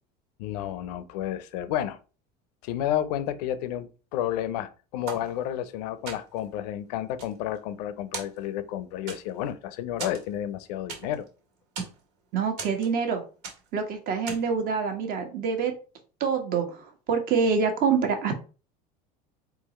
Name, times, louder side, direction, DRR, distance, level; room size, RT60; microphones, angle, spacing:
voice 1, 0.4-2.0 2.6-11.3, left 11 dB, 85° left, 0.6 m, -31 dB
sound 1, 5.1-5.7 6.1-6.5 7.0-7.9 8.1-8.7 9.1-9.5 10.0-11.3 11.6-12.0 12.6-13.1 13.4-13.8 14.3-14.6, right 5 dB, 80° right, 1.8 m, -39 dB
voice 2, 12.3-13.2 13.7-15.7 16.2-18.3, right 5 dB, 45° right, 1.2 m, -26 dB
3.9 x 2.9 x 4.1 m
supercardioid pair, 135°, 20 cm